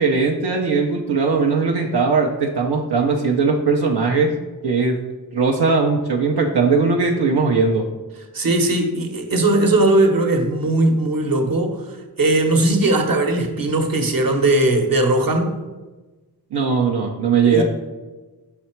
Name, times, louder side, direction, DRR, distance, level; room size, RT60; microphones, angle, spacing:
voice 1, 0.0-4.3 4.6-5.0 5.3-7.8 16.5-17.6, right 4 dB, 85° right, 0 dB, 0.7 m, -19 dB
voice 2, 8.3-11.8 12.2-15.5 17.5-17.6, right 2 dB, 60° right, 4 dB, 1.0 m, -18 dB
5.7 x 4.2 x 4.4 m, 1.2 s
wide cardioid pair, 50°, 39 cm